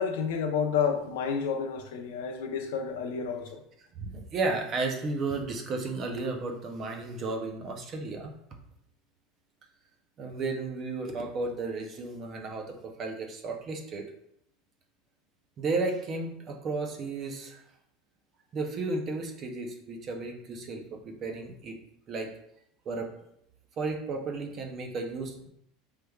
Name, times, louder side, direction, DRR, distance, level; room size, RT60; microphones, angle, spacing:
voice 1, 0.0-3.6, left 6 dB, 85° left, 6 dB, 0.4 m, -30 dB
voice 2, 4.0-8.3 10.2-14.0 15.6-17.6 18.5-21.8 22.1-22.3 22.9-23.1 23.8-25.5, right 3 dB, 30° right, 3 dB, 0.5 m, -33 dB
3.2 x 3.2 x 2.2 m, 0.74 s
supercardioid pair, 155°, 0 cm